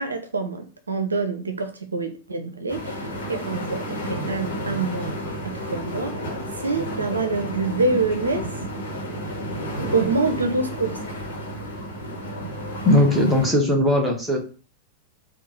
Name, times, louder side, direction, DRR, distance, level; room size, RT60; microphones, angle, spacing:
voice 1, 0.0-6.3 6.6-8.5 9.9-11.0, right 3 dB, 75° right, 6 dB, 0.5 m, -26 dB
sound 1, 2.7-13.5, equal, 60° left, 1.2 m, -31 dB
voice 2, 12.8-14.4, left 1 dB, ahead, -2 dB, 1.2 m, -18 dB
3.7 x 2.3 x 4.3 m, 0.36 s
figure-of-eight pair, 90°, 0 cm